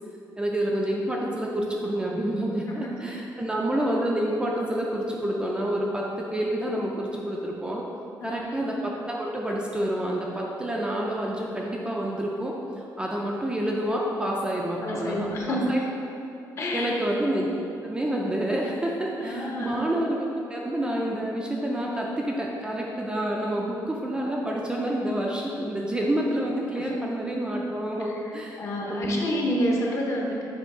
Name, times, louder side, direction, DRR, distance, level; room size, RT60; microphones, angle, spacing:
voice 1, 0.4-7.8 8.2-12.6 13.0-15.8 16.7-17.5 17.8-28.6 28.9-29.3, right 1 dB, 10° right, -2 dB, 0.4 m, -28 dB
voice 2, 2.7-3.2 8.2-8.4 14.8-15.9 16.6-17.0 19.2-19.9 26.8-27.0 28.0-28.3 28.6-30.4, equal, 40° left, -1 dB, 0.8 m, -29 dB
6.9 x 2.9 x 4.7 m, 2.7 s
cardioid pair, 170°, 8 cm